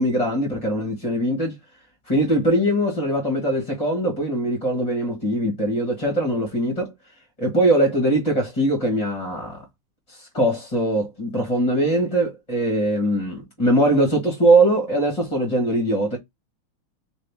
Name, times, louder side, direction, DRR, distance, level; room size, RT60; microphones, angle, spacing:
voice 1, 0.0-1.6 2.1-6.9 7.4-9.6 10.1-16.2, right 1 dB, 20° left, 1.3 m, -21 dB
4.0 x 3.3 x 3.5 m
omnidirectional pair, 2.3 m